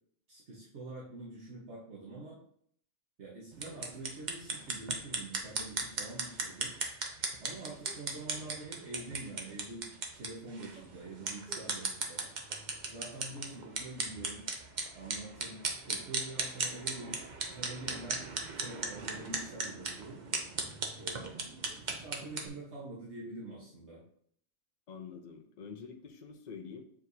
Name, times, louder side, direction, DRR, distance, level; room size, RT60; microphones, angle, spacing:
voice 1, 0.3-2.4 3.2-6.8 7.4-12.2 12.9-14.5 14.9-20.2 21.0-21.4 21.8-24.0, right 2 dB, 70° right, -6 dB, 1.6 m, -46 dB
sound 1, 3.5-22.5, right 3 dB, 45° right, 0.8 m, -37 dB
voice 2, 24.9-26.8, left 6 dB, 45° left, 3 dB, 0.8 m, -46 dB
7.7 x 4.6 x 2.7 m, 0.62 s
omnidirectional pair, 1.2 m